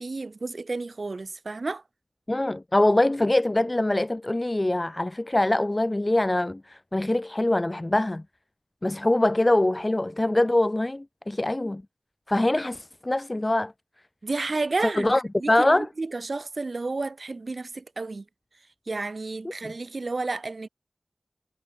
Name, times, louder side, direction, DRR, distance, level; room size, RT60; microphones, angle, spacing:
voice 1, 0.0-1.8 14.2-15.1 15.4-18.2 18.9-20.7, right 3 dB, 70° right, 6.3 m, -31 dB
voice 2, 2.3-8.2 8.8-11.8 12.3-13.7 15.0-15.2 15.5-15.9, left 1 dB, 30° left, 7.5 m, -23 dB
wide cardioid pair, 70°, 0 cm